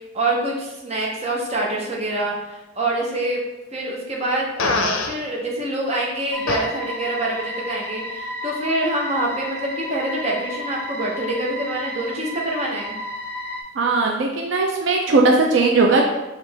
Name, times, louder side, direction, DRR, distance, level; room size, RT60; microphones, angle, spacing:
voice 1, 0.1-3.4 3.7-13.0, right 1 dB, 30° right, -2 dB, 0.7 m, -25 dB
Fart, 4.6-5.2 6.5-6.6, left 4 dB, 85° left, 0.5 m, -22 dB
sound 1, 6.3-13.6, equal, 10° left, 0.5 m, -32 dB
voice 2, 13.8-16.0, right 3 dB, 70° right, 1 dB, 0.4 m, -18 dB
4.4 x 2.5 x 3.3 m, 1.0 s
head